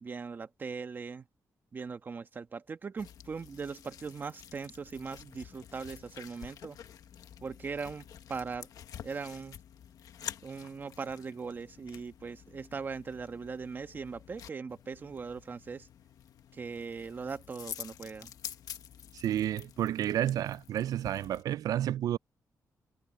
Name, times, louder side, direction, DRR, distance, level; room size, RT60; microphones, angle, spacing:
voice 1, 0.0-1.2 1.7-6.8 7.4-8.7 9.0-9.6 10.4-15.9 16.5-18.3, right 5 dB, 30° right, 1.3 m, -40 dB
sound 1, 3.0-21.4, left 9 dB, 75° left, 1.4 m, -49 dB
voice 2, 19.1-22.2, right 11 dB, 75° right, 0.3 m, -31 dB
wide cardioid pair, 165°, 6 cm